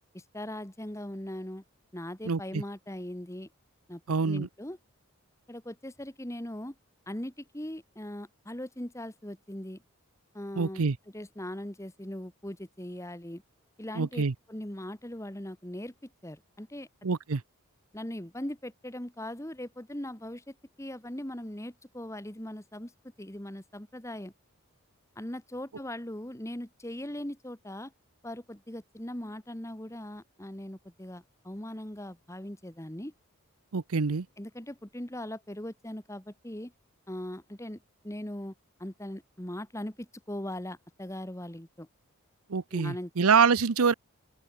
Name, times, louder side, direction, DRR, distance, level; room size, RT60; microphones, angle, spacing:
voice 1, 0.1-1.6 1.9-3.5 3.9-4.8 5.5-6.7 7.1-9.8 10.3-10.8 11.1-13.4 13.8-14.2 14.5-16.9 17.9-22.9 23.2-24.3 25.1-27.9 28.2-33.1 34.4-36.7 37.1-37.8 38.0-38.5 38.8-41.9 42.7-43.1, left 1 dB, 15° left, 1.6 m, -40 dB
voice 2, 2.2-2.6 4.1-4.5 10.6-11.0 14.0-14.3 17.0-17.4 33.7-34.3 42.5-43.9, right 5 dB, 85° right, 0.7 m, -25 dB
open air
head